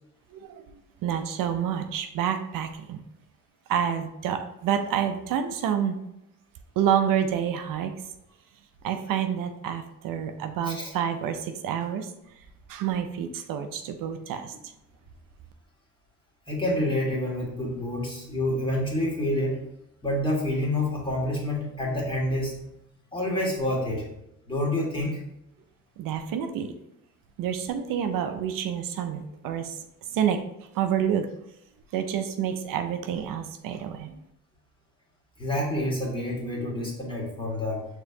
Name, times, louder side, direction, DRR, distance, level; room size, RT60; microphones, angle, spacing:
voice 1, 0.3-0.6 1.0-3.0 3.7-6.0 6.8-7.9 8.8-12.1 12.7-14.5 26.0-26.7 27.4-29.8 30.1-30.4 30.7-31.3 31.9-34.1, right 8 dB, 80° right, 7 dB, 0.5 m, -28 dB
voice 2, 16.5-19.6 20.0-22.7 23.1-24.0 24.5-25.2 35.4-37.8, left 1 dB, 15° left, -4 dB, 1.6 m, -28 dB
5.0 x 3.6 x 2.8 m, 0.81 s
cardioid pair, 85°, 33 cm